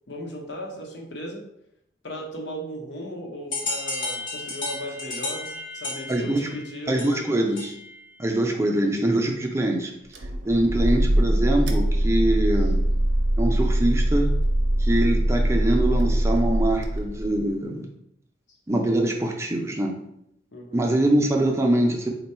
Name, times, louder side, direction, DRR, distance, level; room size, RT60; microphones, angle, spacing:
voice 1, 0.1-1.4 2.0-5.5 5.7-7.3 20.5-20.8, equal, 70° left, 0 dB, 0.8 m, -36 dB
sound 1, 3.5-8.0, left 2 dB, 45° left, 1.1 m, -33 dB
voice 2, 6.1-6.5 6.9-7.8 8.2-9.9 10.4-12.8 13.4-14.3 14.8-17.9 18.7-19.9 20.7-22.1, right 1 dB, 15° right, 2 dB, 0.4 m, -23 dB
sound 2, 10.1-17.5, right 1 dB, 70° right, 0.5 m, -22 dB
3.5 x 2.2 x 4.2 m, 0.77 s
head